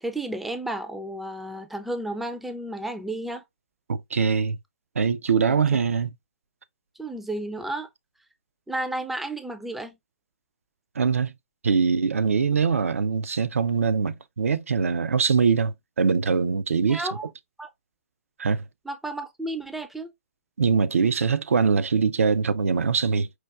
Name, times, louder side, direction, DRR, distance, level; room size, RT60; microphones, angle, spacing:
voice 1, 0.0-3.4 5.5-5.6 7.0-7.9 8.7-10.0 16.9-17.3 17.6-17.7 18.9-20.1, right 1 dB, ahead, 0.3 m, -32 dB
voice 2, 3.9-4.6 5.0-6.1 11.0-11.3 11.6-17.1 18.4-18.6 20.6-23.3, right 5 dB, 75° right, 0.4 m, -23 dB
4.5 x 2.2 x 2.3 m
figure-of-eight pair, 130°, 8 cm